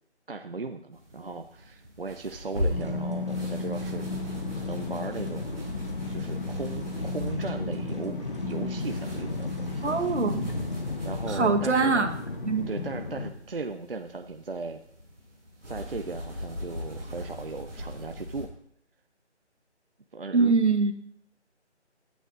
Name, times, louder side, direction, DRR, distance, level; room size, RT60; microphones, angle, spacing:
voice 1, 0.3-5.5 6.1-8.2 8.4-9.9 11.0-12.2 12.7-14.8 15.6-18.5 20.1-20.7, right 3 dB, 55° right, 7 dB, 0.5 m, -37 dB
sound 1, 0.9-18.5, left 1 dB, 5° right, 4.2 m, -40 dB
sound 2, 2.7-13.3, left 3 dB, 45° left, 1.0 m, -33 dB
sound 3, 2.8-3.5 3.7-10.2, equal, 25° right, 0.9 m, -46 dB
voice 2, 9.8-10.5 11.3-12.1 12.4-12.6 20.3-20.9, right 4 dB, 75° right, 7 dB, 1.3 m, -23 dB
14.0 x 9.3 x 2.6 m, 0.67 s
figure-of-eight pair, 180°, 35 cm